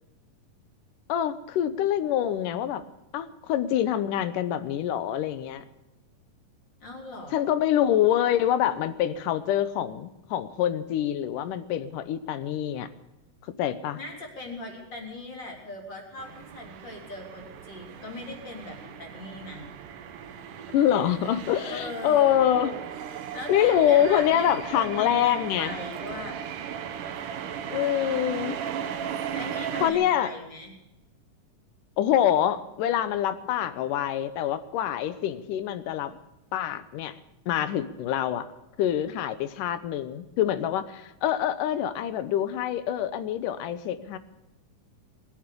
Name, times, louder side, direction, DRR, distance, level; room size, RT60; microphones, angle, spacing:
voice 1, 1.1-2.8 3.1-5.6 7.3-12.9 13.6-14.0 20.7-22.8 23.5-25.8 27.7-28.6 29.8-30.3 32.0-36.2 36.5-37.2 37.5-38.5 38.8-44.2, left 10 dB, 80° left, 13 dB, 2.5 m, -25 dB
voice 2, 6.8-7.5 13.9-19.7 21.6-22.4 23.3-26.4 29.3-30.7, left 1 dB, 35° left, 0 dB, 4.1 m, -39 dB
sound 1, 16.2-29.9, right 8 dB, 75° right, 2.6 m, -36 dB
20.5 x 9.3 x 6.8 m, 0.96 s
omnidirectional pair, 3.7 m